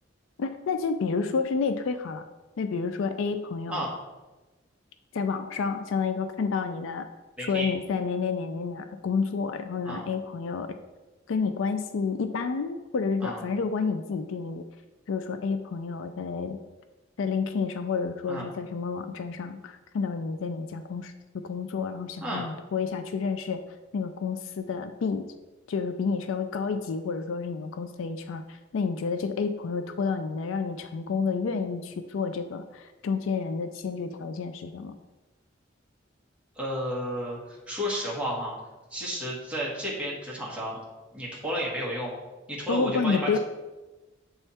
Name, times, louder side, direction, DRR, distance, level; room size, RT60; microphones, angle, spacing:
voice 1, 0.4-2.2 2.6-3.8 5.1-7.1 7.4-10.8 11.3-14.6 15.1-16.6 17.2-21.1 21.4-23.6 23.9-25.3 25.7-34.9 42.7-43.4, left 5 dB, 70° left, 9 dB, 0.4 m, -30 dB
voice 2, 7.4-7.7 9.8-10.0 13.2-13.4 18.3-18.5 22.2-22.5 36.5-38.5 38.9-40.8 41.1-42.1 42.5-43.4, equal, 5° right, -5 dB, 1.5 m, -32 dB
8.0 x 3.5 x 4.2 m, 1.1 s
head